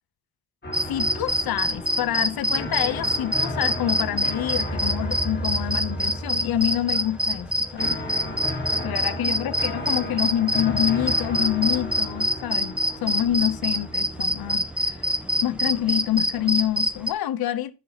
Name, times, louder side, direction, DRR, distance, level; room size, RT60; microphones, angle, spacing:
sound 1, 0.6-16.6, equal, 25° left, 1.2 m, -34 dB
sound 2, 0.7-17.1, equal, 5° right, 0.6 m, -26 dB
voice 1, 0.9-8.0 8.8-15.0 15.4-17.7, left 12 dB, 65° left, 0.6 m, -27 dB
12.5 x 5.6 x 2.8 m
wide cardioid pair, 125°, 41 cm